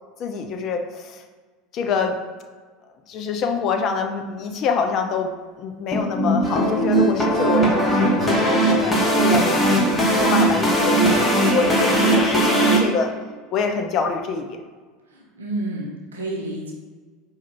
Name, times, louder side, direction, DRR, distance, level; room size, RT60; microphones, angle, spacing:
voice 1, 0.2-1.2 1.7-2.2 3.1-5.3 5.6-13.1 13.5-14.6, left 5 dB, 40° left, 4 dB, 0.5 m, -26 dB
sound 1, 5.9-12.8, right 1 dB, 15° left, 1.0 m, -19 dB
sound 2, 6.4-12.4, right 1 dB, 20° right, 1.2 m, -32 dB
voice 2, 15.1-16.7, right 1 dB, 70° right, -2 dB, 0.7 m, -30 dB
4.8 x 2.7 x 3.4 m, 1.4 s
figure-of-eight pair, 75°, 0 cm